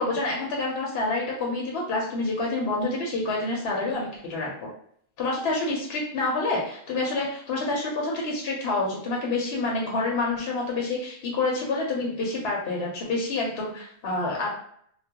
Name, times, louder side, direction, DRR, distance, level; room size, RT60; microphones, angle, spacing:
voice 1, 0.0-4.7 5.2-14.5, left 2 dB, 70° left, -2 dB, 0.8 m, -28 dB
2.3 x 2.2 x 2.7 m, 0.66 s
omnidirectional pair, 1.1 m